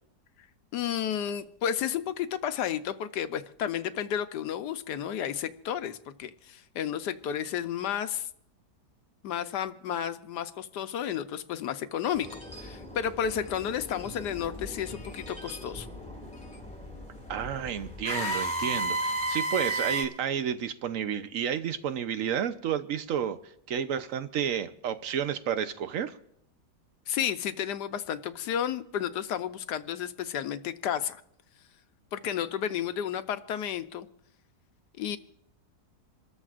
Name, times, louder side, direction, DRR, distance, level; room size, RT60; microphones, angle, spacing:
voice 1, 0.7-8.3 9.2-15.9 27.1-31.2 32.1-34.1 35.0-35.2, left 9 dB, 80° left, 10 dB, 1.3 m, -32 dB
sound 1, 12.1-20.0, right 1 dB, 5° left, 1.8 m, -35 dB
voice 2, 17.3-26.2, right 8 dB, 60° right, 11 dB, 1.0 m, -31 dB
27.5 x 13.5 x 2.5 m, 0.74 s
omnidirectional pair, 1.8 m